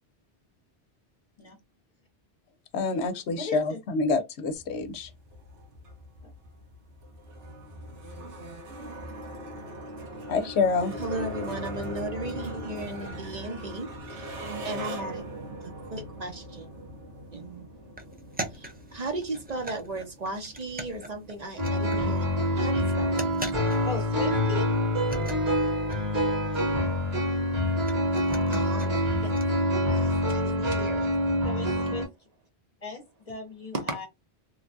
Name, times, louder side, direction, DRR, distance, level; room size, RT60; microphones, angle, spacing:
voice 1, 2.7-5.1 10.3-10.9, left 4 dB, 75° left, 0.9 m, -27 dB
voice 2, 3.4-3.8 6.2-6.3 23.8-24.7 31.4-32.1 32.8-34.1, left 4 dB, 35° left, 0.8 m, -37 dB
sound 1, 4.5-23.9, right 1 dB, 85° right, 1.2 m, -41 dB
voice 3, 11.0-15.3 15.6-16.7 17.3-17.7 18.4-23.2 26.3-26.6 28.5-29.2 29.8-31.2 31.6-32.0 33.7-34.1, right 2 dB, 45° right, 0.7 m, -36 dB
sound 2, 18.0-22.1 22.4-22.5 22.8-24.2 24.4-24.5 24.7-29.4, right 1 dB, 15° right, 0.3 m, -41 dB
sound 3, 21.6-32.1, left 1 dB, 65° right, 1.4 m, -26 dB
3.1 x 2.2 x 2.5 m
omnidirectional pair, 1.2 m